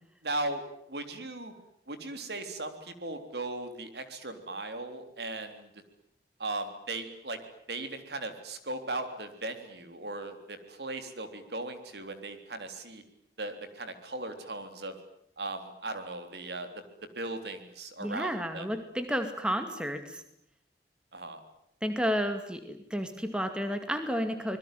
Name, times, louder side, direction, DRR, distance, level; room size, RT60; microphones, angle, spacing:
voice 1, 0.2-1.5 1.9-5.7 6.4-7.4 7.7-13.0 13.4-15.0 15.4-18.7 21.1-21.4, right 2 dB, 70° right, 8 dB, 3.6 m, -38 dB
voice 2, 18.0-20.2 21.8-24.6, equal, 5° right, 7 dB, 2.3 m, -31 dB
26.0 x 21.5 x 9.3 m, 0.70 s
head